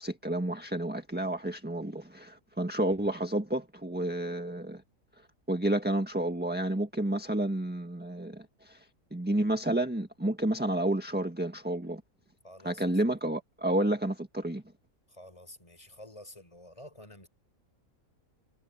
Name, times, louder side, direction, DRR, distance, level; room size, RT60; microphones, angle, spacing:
voice 1, 0.0-4.8 5.5-8.8 9.1-12.0 12.6-14.6, right 1 dB, 5° right, 1.5 m, -30 dB
voice 2, 12.4-13.0 15.1-17.3, left 1 dB, 25° left, 4.8 m, -50 dB
omnidirectional pair, 1.4 m